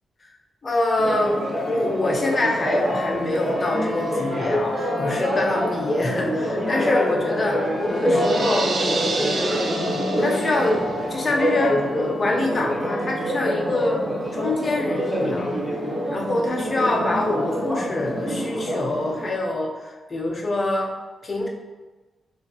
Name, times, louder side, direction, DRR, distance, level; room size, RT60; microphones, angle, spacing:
voice 1, 0.6-8.7 9.1-9.7 10.2-14.0 14.3-15.6 16.1-20.9 21.2-21.5, left 2 dB, 30° left, 0 dB, 0.6 m, -25 dB
Church bell, 1.0-19.3, equal, 10° right, 0.8 m, -25 dB
sound 1, 8.2-10.7, right 3 dB, 45° right, 0.4 m, -29 dB
3.0 x 2.6 x 4.0 m, 1.2 s
wide cardioid pair, 140°, 0 cm